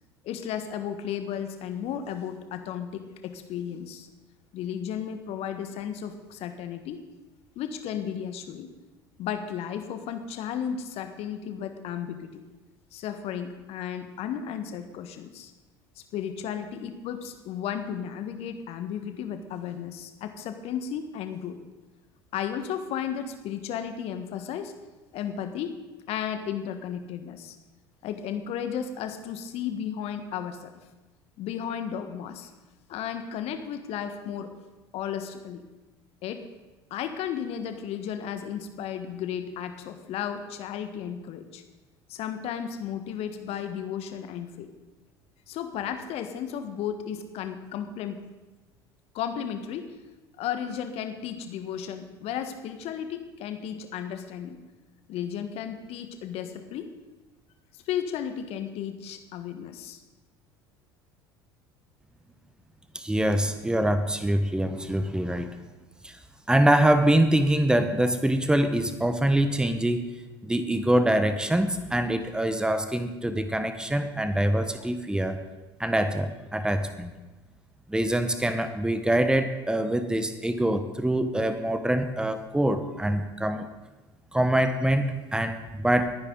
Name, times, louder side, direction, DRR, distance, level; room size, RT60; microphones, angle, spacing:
voice 1, 0.2-4.1 4.5-7.0 7.5-8.7 9.2-12.3 12.9-15.5 16.1-21.6 22.3-24.7 25.1-25.8 26.1-27.6 28.0-30.7 31.4-32.5 32.9-34.5 34.9-35.6 36.2-36.5 36.9-41.6 42.1-44.7 45.5-48.2 49.1-49.9 50.4-54.6 55.1-56.9 57.7-60.0, left 8 dB, 50° left, 8 dB, 1.5 m, -34 dB
voice 2, 62.9-65.5 66.0-66.1 66.5-70.0 70.4-75.4 75.8-77.1 77.9-83.7 84.3-86.1, right 1 dB, 5° right, 9 dB, 1.3 m, -24 dB
22.0 x 9.7 x 4.0 m, 1.2 s
figure-of-eight pair, 65°, 13 cm